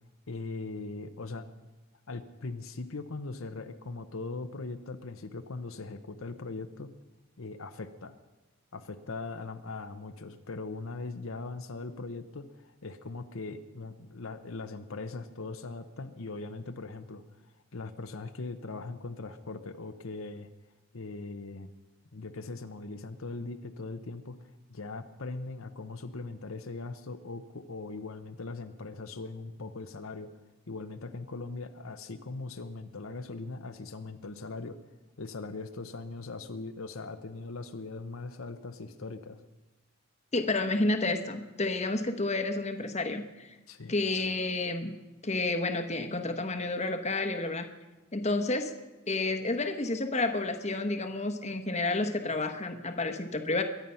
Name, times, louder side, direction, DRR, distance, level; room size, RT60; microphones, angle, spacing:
voice 1, 0.3-1.5 2.1-6.9 7.4-8.1 8.7-17.2 17.7-20.5 20.9-21.7 22.1-30.3 30.7-34.8 35.2-39.4 43.7-43.9, left 3 dB, 70° left, 8 dB, 0.8 m, -40 dB
voice 2, 40.3-43.5 43.9-44.9 45.2-47.7 48.1-48.7 49.1-53.6, left 2 dB, 30° left, 6 dB, 1.1 m, -30 dB
23.0 x 9.3 x 5.7 m, 1.1 s
head